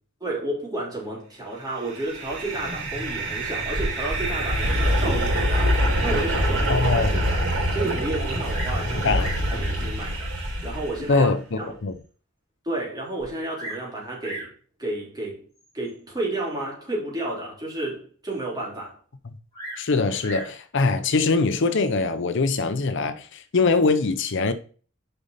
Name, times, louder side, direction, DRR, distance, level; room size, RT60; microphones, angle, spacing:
voice 1, 0.2-7.4 7.7-9.1 9.5-10.3 10.6-11.7 12.6-14.5 14.8-15.5 15.7-19.0, right 2 dB, 20° right, 3.5 m, -31 dB
sound 1, 1.9-11.1, equal, 60° right, 3.8 m, -25 dB
voice 2, 6.7-7.1 9.0-9.3 11.1-12.0 19.3-19.4 19.8-24.5, left 3 dB, 65° left, 0.7 m, -22 dB
Bird vocalization bird call bird song, 8.5-8.9 9.1-9.5 10.4-10.5 11.1-11.2 11.7-11.8 12.0-12.1 13.2-13.9 14.2-14.6 15.6-15.9 19.5-20.6 21.6-22.1, right 1 dB, 20° left, 3.8 m, -38 dB
6.8 x 5.2 x 4.0 m
head